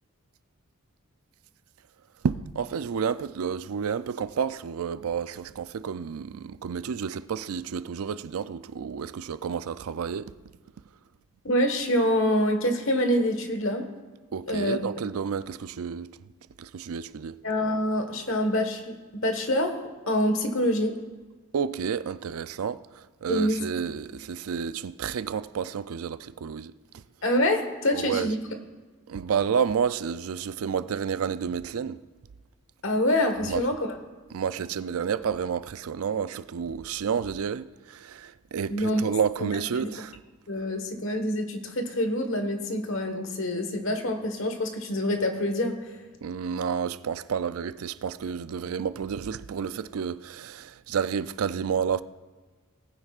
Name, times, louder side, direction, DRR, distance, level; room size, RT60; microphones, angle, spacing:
voice 1, 2.2-10.3 14.3-16.1 16.6-17.4 21.5-22.8 23.2-26.7 27.9-28.3 29.1-32.0 33.4-33.6 34.3-40.2 46.2-52.0, right 7 dB, 75° right, 0.4 m, -30 dB
voice 2, 11.4-13.8 14.5-14.8 17.4-18.9 19.2-19.7 20.1-21.0 23.3-23.6 27.2-28.4 32.8-33.9 38.7-39.0 39.4-39.5 39.7-39.9 40.5-45.7, left 1 dB, 60° left, 1.4 m, -26 dB
18.5 x 9.8 x 2.4 m
head